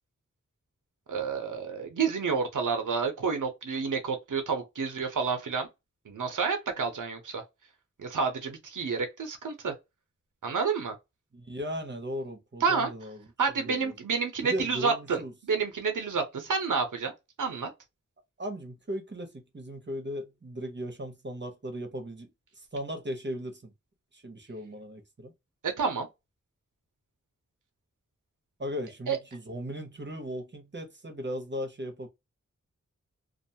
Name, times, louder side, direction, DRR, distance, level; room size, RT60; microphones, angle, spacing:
voice 1, 1.1-5.7 6.1-7.4 8.0-9.7 10.4-11.0 12.6-12.9 13.4-17.1 17.4-17.7 25.6-26.1 29.1-29.2, right 5 dB, 85° right, 0.7 m, -29 dB
voice 2, 11.3-13.2 13.5-13.9 14.4-15.3 18.4-22.3 22.6-23.7 24.1-25.3 28.6-32.1, equal, 35° right, 0.8 m, -37 dB
2.5 x 2.2 x 2.7 m
wide cardioid pair, 50°, 31 cm